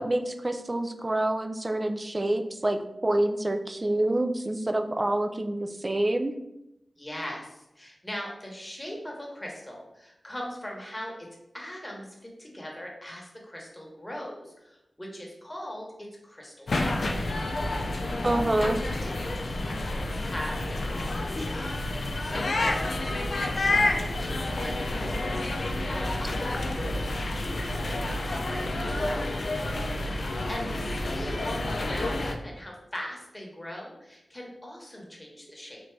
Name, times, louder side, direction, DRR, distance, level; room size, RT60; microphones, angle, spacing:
voice 1, 0.0-6.3 18.2-18.8, right 1 dB, 35° right, 7 dB, 0.3 m, -27 dB
voice 2, 7.0-11.3 11.5-17.3 18.2-18.3 18.6-18.8 19.0-21.5 21.9-29.2 30.1-35.8, left 1 dB, 20° left, -1 dB, 1.0 m, -40 dB
sound 1, 16.7-32.3, left 2 dB, 70° left, 0.3 m, -29 dB
3.3 x 2.5 x 3.2 m, 0.87 s
cardioid pair, 45°, 0 cm